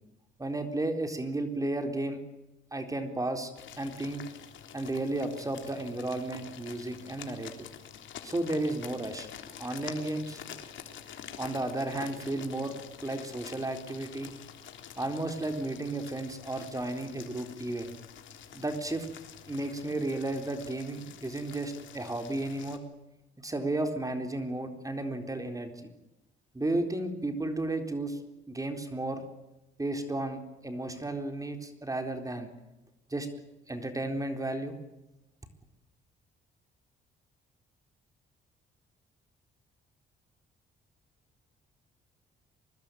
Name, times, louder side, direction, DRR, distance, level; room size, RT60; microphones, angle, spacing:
voice 1, 0.4-2.2 2.7-3.5 3.8-4.2 4.7-7.7 8.2-9.3 9.6-10.4 11.4-12.7 13.0-14.3 15.0-17.9 18.5-19.1 19.5-22.8 23.4-25.9 26.5-28.2 28.5-29.2 29.8-32.5 33.1-33.3 33.7-34.8, right 2 dB, 15° right, 6 dB, 4.0 m, -33 dB
sound 1, 3.6-22.8, left 8 dB, 70° left, 3.7 m, -47 dB
25.0 x 20.5 x 9.2 m, 0.98 s
cardioid pair, 90°, 20 cm